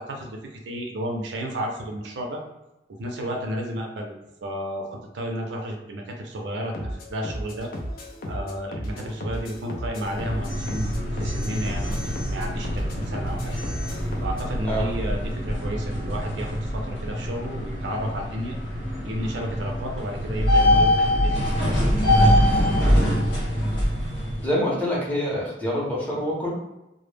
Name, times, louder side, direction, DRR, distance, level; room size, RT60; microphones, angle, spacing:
voice 1, 0.0-2.4 3.0-4.2 4.4-7.7 8.3-13.5 14.2-18.6 19.0-22.3 22.6-22.8, equal, 75° right, 1 dB, 0.5 m, -32 dB
sound 1, 6.7-14.5, equal, 50° left, 0.4 m, -35 dB
sound 2, 10.0-24.4, left 1 dB, 75° left, 1.0 m, -24 dB
voice 2, 24.4-26.5, equal, 10° left, -6 dB, 0.6 m, -25 dB
2.0 x 2.0 x 3.2 m, 0.94 s
head